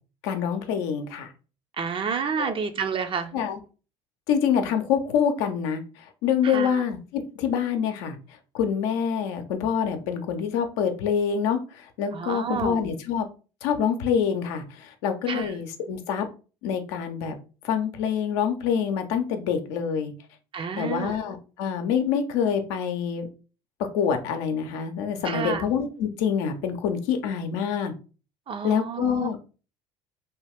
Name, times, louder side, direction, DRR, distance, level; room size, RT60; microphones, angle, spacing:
voice 1, 0.2-1.3 2.4-2.5 3.3-3.6 4.3-8.2 8.5-13.3 13.6-16.3 16.6-17.3 17.6-20.1 20.8-23.3 23.9-27.9 28.6-29.4, left 7 dB, 75° left, 6 dB, 0.6 m, -26 dB
voice 2, 1.8-3.3 6.5-6.7 12.1-12.8 15.3-15.5 20.5-21.1 25.3-25.6 28.5-29.3, right 6 dB, 40° right, 8 dB, 0.6 m, -29 dB
2.9 x 2.3 x 3.4 m, 0.35 s
hypercardioid pair, 70°, 14 cm